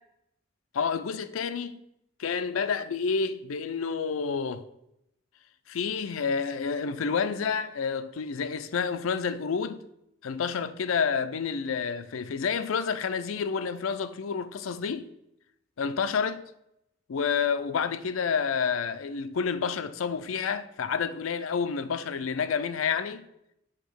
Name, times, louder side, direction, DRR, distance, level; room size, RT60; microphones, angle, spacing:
voice 1, 0.7-1.8 2.2-4.7 5.7-9.8 10.2-15.1 15.8-16.4 17.1-23.3, left 6 dB, 85° left, 0.5 m, -29 dB
8.2 x 3.0 x 6.2 m
head